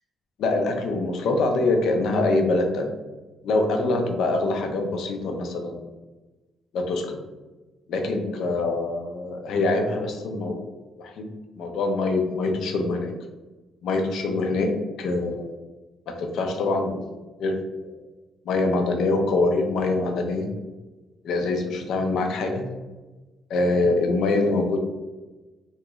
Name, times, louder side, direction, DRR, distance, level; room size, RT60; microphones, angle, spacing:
voice 1, 0.4-2.9 3.4-5.9 6.7-7.2 7.9-10.6 11.0-13.1 13.8-14.7 15.0-15.6 16.1-17.1 17.4-17.6 17.8-17.9 18.5-20.5 21.2-22.6 23.5-24.8, left 2 dB, 75° left, 4 dB, 0.5 m, -24 dB
3.0 x 2.3 x 2.9 m, 1.2 s
cardioid pair, 90°, 0 cm